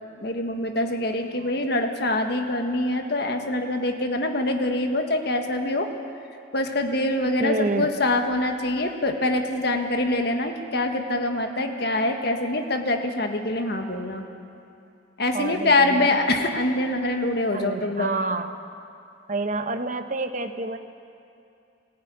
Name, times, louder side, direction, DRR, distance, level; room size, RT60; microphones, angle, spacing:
voice 1, 0.2-5.9 6.5-14.2 15.2-18.1, left 2 dB, 55° left, 4 dB, 1.6 m, -24 dB
voice 2, 7.4-7.9 15.3-16.2 17.5-18.5 19.3-20.8, right 2 dB, 40° right, 7 dB, 1.0 m, -28 dB
20.5 x 15.0 x 9.7 m, 2.6 s
head